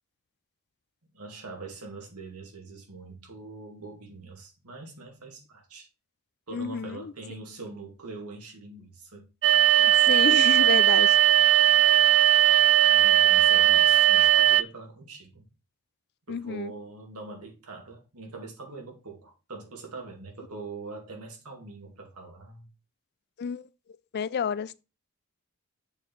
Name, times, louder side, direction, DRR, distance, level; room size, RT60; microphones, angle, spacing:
voice 1, 1.1-5.9 6.5-9.3 12.9-15.5 16.3-22.7, right 3 dB, 80° right, 2.2 m, -43 dB
voice 2, 6.5-7.1 9.8-11.2 16.3-16.7 23.4-23.7 24.1-24.8, left 6 dB, 50° left, 0.4 m, -30 dB
sound 1, 9.4-14.6, right 11 dB, 60° right, 0.3 m, -19 dB
6.8 x 4.4 x 4.5 m
head